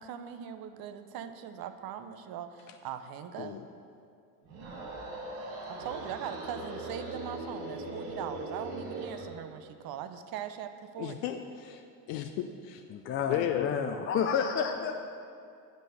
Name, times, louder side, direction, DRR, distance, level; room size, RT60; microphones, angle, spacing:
voice 1, 0.0-3.6 5.7-11.2, right 9 dB, 50° right, 9 dB, 0.7 m, -40 dB
sound 1, 4.4-9.3, right 2 dB, 70° right, 2.1 m, -40 dB
voice 2, 11.0-11.8 12.1-12.8 13.3-13.8, left 11 dB, 70° left, 6 dB, 0.6 m, -34 dB
voice 3, 12.9-15.0, left 6 dB, 30° left, 4 dB, 0.4 m, -30 dB
7.6 x 5.2 x 6.4 m, 2.4 s
supercardioid pair, 95°, 48 cm